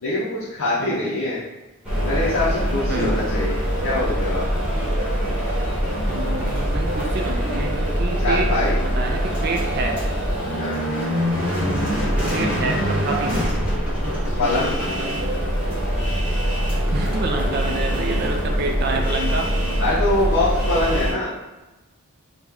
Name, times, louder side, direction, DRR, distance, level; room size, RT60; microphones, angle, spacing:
voice 1, 0.0-1.4 2.0-3.6 3.8-4.5 8.2-8.8 10.6-10.8 14.4-14.7 19.8-21.3, left 2 dB, 75° left, -9 dB, 0.7 m, -23 dB
voice 2, 0.8-1.2 2.9-3.2 6.1-10.0 12.3-13.5 16.9-19.5, right 3 dB, 45° right, 3 dB, 0.4 m, -28 dB
sound 1, 1.8-21.1, equal, 5° right, 0.9 m, -23 dB
3.0 x 2.1 x 3.6 m, 1.1 s
head